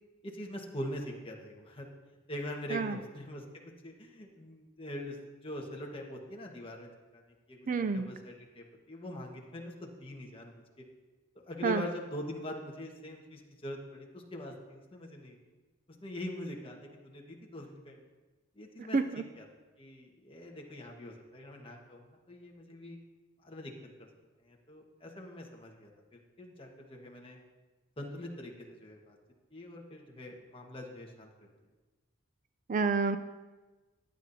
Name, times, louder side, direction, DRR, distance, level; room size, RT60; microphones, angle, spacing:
voice 1, 0.2-1.9 2.3-3.4 3.8-7.2 7.5-10.8 11.4-15.3 16.0-18.1 18.5-19.5 19.8-23.0 23.4-24.1 24.4-27.4 28.0-29.2 29.5-31.3, left 1 dB, 25° left, 0 dB, 1.3 m, -43 dB
voice 2, 7.7-8.1 11.6-11.8 18.9-19.0 32.7-33.2, right 4 dB, 40° right, 10 dB, 0.3 m, -28 dB
15.5 x 10.0 x 2.7 m, 1.2 s
head